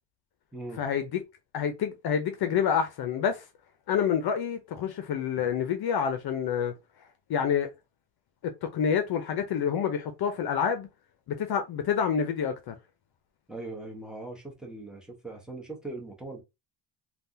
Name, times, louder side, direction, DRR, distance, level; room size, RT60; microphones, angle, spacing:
voice 1, 0.8-1.2 1.5-3.4 3.9-6.7 7.3-7.7 8.4-10.9 11.3-12.7, left 7 dB, 50° left, 0.7 m, -28 dB
voice 2, 13.5-16.4, right 2 dB, ahead, 1.2 m, -40 dB
3.4 x 2.3 x 2.7 m
cardioid pair, 105°, 48 cm